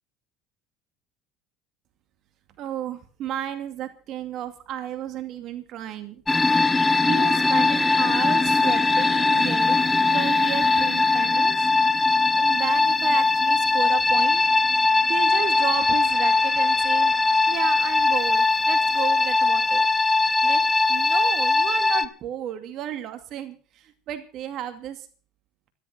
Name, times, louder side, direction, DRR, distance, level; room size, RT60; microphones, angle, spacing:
voice 1, 2.6-6.2 7.1-11.6 12.3-14.4 15.1-17.1 17.5-19.9 20.4-20.6 20.9-25.1, right 10 dB, 60° right, 9 dB, 2.4 m, -33 dB
sound 1, 6.3-22.1, left 3 dB, 15° left, 1.2 m, -20 dB
13.5 x 13.5 x 6.2 m, 0.40 s
hypercardioid pair, 80°, 0 cm